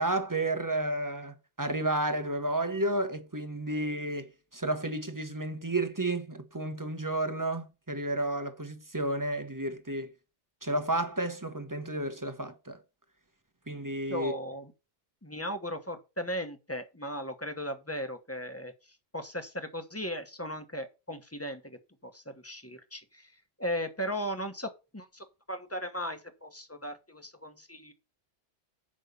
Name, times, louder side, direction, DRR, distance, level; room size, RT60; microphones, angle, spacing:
voice 1, 0.0-10.1 10.6-12.8 13.7-14.3, right 1 dB, 20° right, 0.9 m, -32 dB
voice 2, 14.1-14.7 15.2-18.7 19.1-23.3 23.6-27.9, equal, 15° left, 1.1 m, -37 dB
7.4 x 5.4 x 6.7 m
omnidirectional pair, 1.2 m